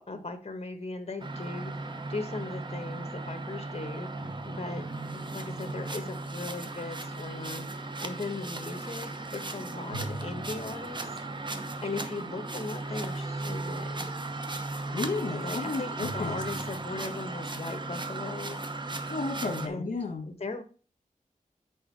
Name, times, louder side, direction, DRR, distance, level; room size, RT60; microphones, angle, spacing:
voice 1, 0.0-4.9 5.1-11.1 11.8-14.1 15.4-18.6 19.6-20.0 20.2-20.6, left 3 dB, 45° left, 7 dB, 1.3 m, -38 dB
sound 1, 1.2-19.7, right 2 dB, 35° right, 0.9 m, -36 dB
sound 2, 9.9-11.5 16.0-17.1, right 1 dB, 65° right, 1.8 m, -44 dB
voice 2, 14.9-16.3 19.1-20.2, left 3 dB, 70° left, 2 dB, 1.2 m, -32 dB
6.4 x 5.1 x 4.7 m, 0.37 s
wide cardioid pair, 95°, 14 cm